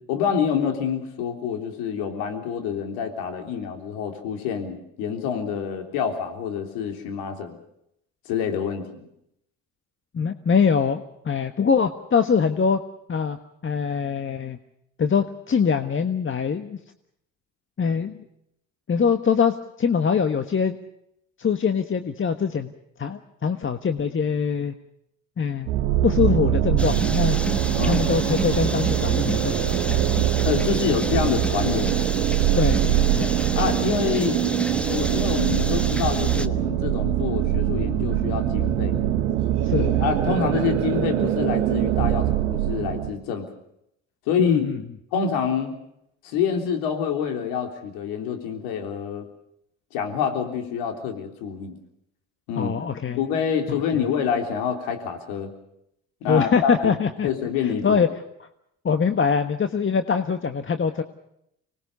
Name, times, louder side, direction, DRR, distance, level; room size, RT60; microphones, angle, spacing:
voice 1, 0.1-7.6 8.3-8.9 27.8-28.1 30.5-32.1 33.2-34.4 34.9-39.0 39.8-43.5 44.3-44.7 45.1-45.7 46.2-49.2 49.9-51.8 52.5-52.7 53.2-55.5 56.2-56.9 57.2-58.0, left 7 dB, 80° left, 5 dB, 3.6 m, -27 dB
voice 2, 10.1-12.8 13.1-13.4 13.6-14.6 15.0-16.8 17.8-18.2 18.9-20.8 21.4-22.7 23.0-24.7 25.4-25.7 26.0-27.4 27.9-30.2 32.6-33.2 39.6-39.9 44.4-44.8 52.6-53.2 56.3-57.3 57.6-58.1 58.8-61.0, left 6 dB, 35° left, 8 dB, 1.4 m, -23 dB
sound 1, 25.7-43.1, right 12 dB, 85° right, 1.4 m, -23 dB
sound 2, 26.8-36.5, equal, 5° left, 1.2 m, -30 dB
25.5 x 20.0 x 6.9 m, 0.77 s
hypercardioid pair, 60°, 37 cm